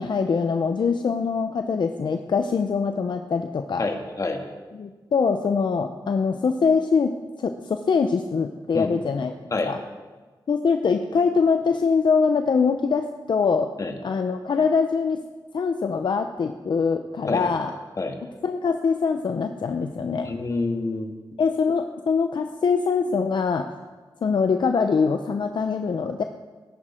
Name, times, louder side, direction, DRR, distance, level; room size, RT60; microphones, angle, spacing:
voice 1, 0.0-3.9 4.8-7.1 7.4-9.3 9.6-9.8 10.5-13.7 14.0-15.2 15.5-17.7 18.4-20.3 21.4-23.7 24.2-26.2, left 5 dB, 65° left, 6 dB, 0.7 m, -23 dB
voice 2, 3.8-4.4 8.7-8.9 9.5-9.7 13.8-13.9 17.3-17.5 18.0-18.1 20.2-21.1, left 3 dB, 40° left, 4 dB, 1.6 m, -27 dB
20.0 x 11.0 x 4.4 m, 1.3 s
wide cardioid pair, 140°, 8 cm